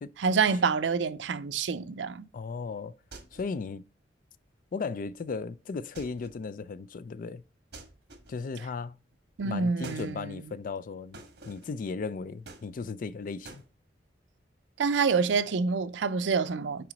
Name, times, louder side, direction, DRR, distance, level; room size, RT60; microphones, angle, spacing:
voice 1, 0.2-2.3 9.4-10.3 14.8-16.9, right 5 dB, 85° right, 0.5 m, -27 dB
voice 2, 2.3-3.0 3.3-3.8 4.7-7.4 8.3-8.9 9.4-13.6, left 4 dB, 50° left, 0.4 m, -36 dB
sound 1, 3.1-3.6 5.9-6.4 7.7-8.5 9.8-10.2 11.1-11.8 12.4-13.1 13.4-13.7, right 3 dB, 65° right, 1.4 m, -48 dB
5.9 x 4.9 x 4.0 m
head